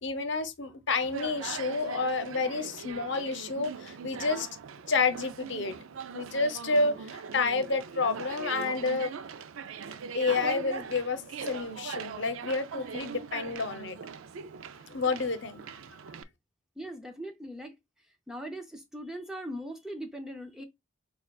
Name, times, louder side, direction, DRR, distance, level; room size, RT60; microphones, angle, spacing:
voice 1, 0.0-4.5 4.9-5.7 6.1-9.1 10.1-14.0 14.9-15.6, left 4 dB, 60° left, 0.8 m, -29 dB
Conversation, 1.0-16.2, right 6 dB, 75° right, 0.4 m, -41 dB
voice 2, 16.8-17.7 18.3-20.6, equal, 5° right, 0.5 m, -40 dB
6.5 x 2.3 x 2.3 m
head